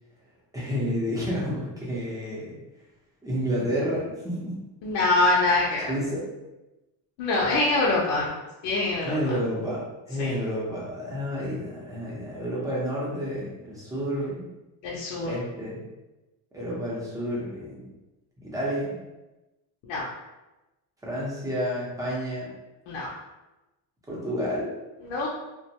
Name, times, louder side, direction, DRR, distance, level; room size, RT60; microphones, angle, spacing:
voice 1, 0.5-2.6 3.2-4.6 5.9-6.3 9.0-14.5 15.2-15.8 16.5-17.8 18.4-19.0 21.0-22.5 24.1-24.7, equal, 5° right, -6 dB, 0.7 m, -30 dB
voice 2, 4.8-5.9 7.2-8.3 8.6-9.4 10.2-10.3 14.8-15.3 19.9-20.0 22.9-23.1 25.0-25.3, left 2 dB, 65° left, -5 dB, 0.7 m, -24 dB
2.4 x 2.2 x 2.8 m, 1.0 s
cardioid pair, 135°, 48 cm